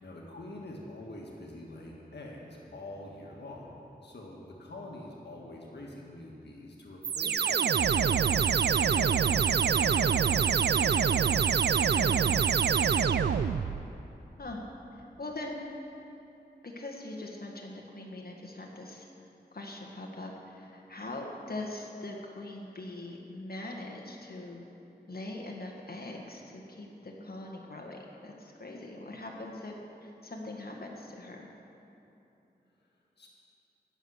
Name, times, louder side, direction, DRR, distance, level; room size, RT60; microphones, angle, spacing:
voice 1, 0.0-11.1 33.2-33.3, left 1 dB, 90° left, -2 dB, 1.6 m, -45 dB
sound 1, 7.0-13.9, right 7 dB, 80° right, 0.4 m, -25 dB
voice 2, 11.9-12.5 14.4-14.6 14.9-15.6 16.6-19.1 19.5-24.6 25.1-31.5, left 2 dB, 60° left, 0 dB, 1.7 m, -42 dB
18.0 x 7.2 x 6.4 m, 2.9 s
cardioid pair, 50°, 17 cm